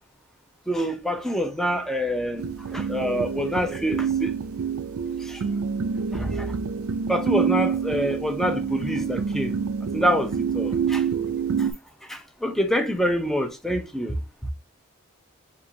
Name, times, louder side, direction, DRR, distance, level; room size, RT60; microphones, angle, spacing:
voice 1, 0.7-2.4 2.7-4.3 5.3-5.4 6.1-6.5 7.1-9.6 9.9-11.0 12.1-14.1, equal, ahead, 0.5 m, -26 dB
sound 1, 2.4-11.7, right 6 dB, 85° right, 0.5 m, -27 dB
6.0 x 2.9 x 2.7 m
head